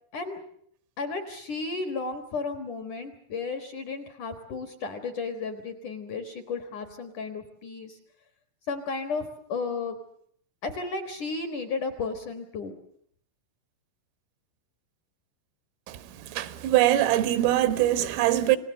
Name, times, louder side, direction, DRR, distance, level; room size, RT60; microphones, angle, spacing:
voice 1, 1.0-8.0 8.7-10.0 10.6-12.7, left 4 dB, 65° left, 2.1 m, -33 dB
voice 2, 16.3-18.6, right 13 dB, 90° right, 3.9 m, -22 dB
28.0 x 19.5 x 7.6 m
omnidirectional pair, 5.7 m